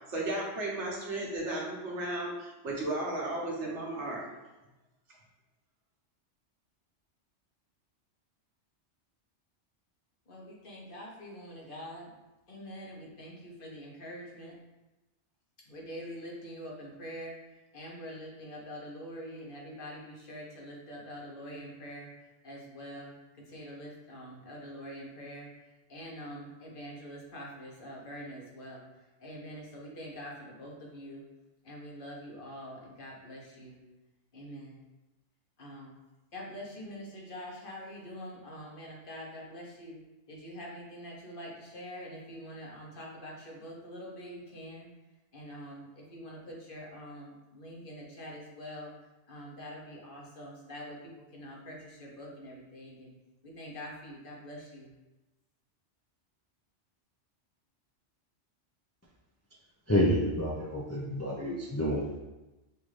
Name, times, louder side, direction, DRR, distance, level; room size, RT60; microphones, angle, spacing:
voice 1, 0.1-4.2, right 1 dB, 85° right, -3 dB, 1.4 m, -34 dB
voice 2, 10.3-12.1 12.5-14.6 15.6-31.3 31.6-33.8 34.3-34.8 35.6-36.0 36.3-40.0 40.3-44.9 45.3-48.9 49.3-53.1 53.4-54.9, equal, 50° left, -3 dB, 1.0 m, -45 dB
voice 3, 59.9-62.2, equal, 20° left, -4 dB, 0.4 m, -29 dB
5.5 x 2.5 x 3.2 m, 1.1 s
omnidirectional pair, 1.2 m